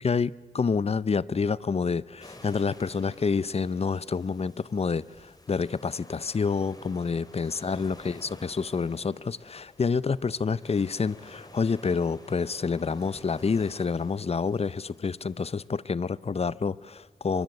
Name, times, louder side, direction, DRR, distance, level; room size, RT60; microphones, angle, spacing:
voice 1, 0.0-17.4, left 5 dB, 45° left, 0.7 m, -28 dB
sound 1, 2.2-15.7, left 1 dB, 25° left, 3.6 m, -51 dB
24.0 x 23.5 x 8.2 m
cardioid pair, 60°, 15 cm